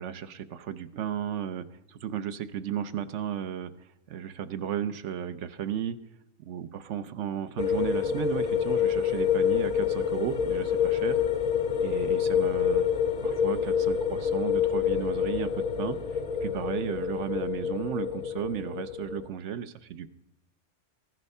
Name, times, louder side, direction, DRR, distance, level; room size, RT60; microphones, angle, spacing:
voice 1, 0.0-6.0 6.4-11.2 11.8-12.8 13.2-20.1, right 9 dB, 70° right, 12 dB, 1.0 m, -34 dB
sound 1, 7.6-19.3, left 8 dB, 45° left, 0.7 m, -27 dB
15.0 x 10.5 x 5.4 m, 0.87 s
omnidirectional pair, 1.3 m